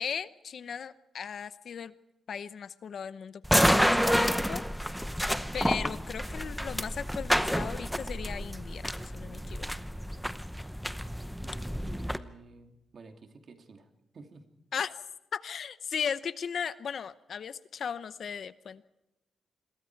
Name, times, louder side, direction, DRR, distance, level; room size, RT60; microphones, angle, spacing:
voice 1, 0.0-1.9 2.3-4.6 5.5-9.7 14.7-14.9 15.3-18.9, left 7 dB, 50° left, 14 dB, 0.8 m, -37 dB
sound 1, 3.4-12.2, equal, ahead, 0.8 m, -29 dB
voice 2, 11.4-13.9 14.1-14.4, right 4 dB, 40° right, 5 dB, 2.6 m, -51 dB
28.5 x 22.5 x 4.7 m, 0.93 s
wide cardioid pair, 150°, 0 cm